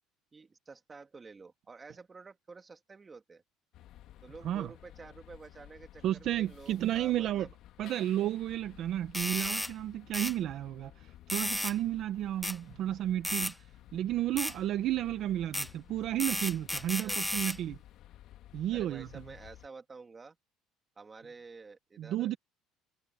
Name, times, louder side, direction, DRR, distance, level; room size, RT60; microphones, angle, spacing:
voice 1, 0.3-3.4 4.2-7.5 7.8-8.1 16.9-17.2 18.7-20.4 21.0-22.4, right 4 dB, 20° right, 2.5 m, -50 dB
sound 1, 3.7-19.7, left 13 dB, 55° left, 2.0 m, -54 dB
voice 2, 6.0-7.5 7.8-13.7 13.9-17.8 18.5-19.1 22.0-22.4, right 12 dB, 50° right, 0.8 m, -32 dB
sound 2, 9.1-9.7 10.1-10.3 11.3-11.8 12.4-12.6 13.2-13.5 14.4-14.5 15.5-15.7 16.2-17.6, left 1 dB, ahead, 0.3 m, -33 dB
cardioid pair, 155°, 0 cm